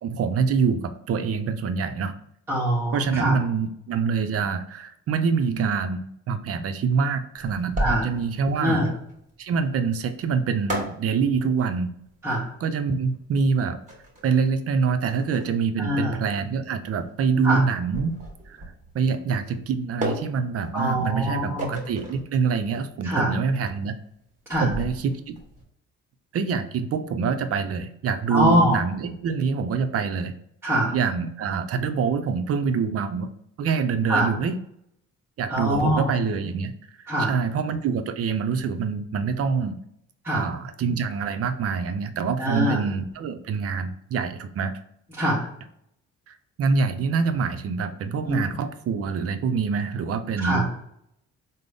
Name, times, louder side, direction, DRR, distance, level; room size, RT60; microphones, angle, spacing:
voice 1, 0.0-2.2 2.9-8.8 9.4-11.9 12.6-13.8 14.2-18.1 18.5-18.6 18.9-24.0 24.6-25.4 26.3-30.3 30.9-33.3 33.6-34.6 35.4-36.7 37.0-39.8 40.3-44.7 46.3-50.7, right 5 dB, 50° right, 9 dB, 0.5 m, -25 dB
voice 2, 2.5-3.4 7.8-8.1 8.6-8.9 12.2-12.5 15.8-16.2 17.4-17.6 20.7-21.7 23.0-23.3 24.5-24.7 28.3-28.8 30.6-31.0 34.1-34.3 35.5-36.1 37.1-37.3 40.2-40.5 42.4-42.8 45.2-45.5 48.2-48.4 50.4-50.7, equal, 10° right, -7 dB, 0.9 m, -23 dB
sound 1, 7.3-25.6, right 1 dB, 25° right, 1.3 m, -36 dB
3.8 x 2.0 x 3.4 m, 0.73 s
cardioid pair, 90°, 30 cm